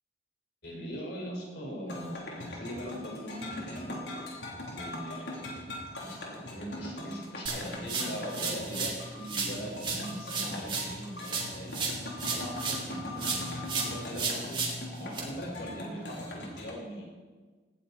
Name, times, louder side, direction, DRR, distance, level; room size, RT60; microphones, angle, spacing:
voice 1, 0.6-4.0 4.7-5.6 6.0-11.9 12.3-14.6 15.0-17.1, equal, 60° left, -2 dB, 5.5 m, -41 dB
sound 1, 1.9-16.7, left 1 dB, 80° left, 3.6 m, -41 dB
sound 2, 7.5-9.0 9.3-12.9 13.2-15.2, right 4 dB, 30° right, 2.9 m, -34 dB
18.5 x 15.0 x 4.4 m, 1.4 s
head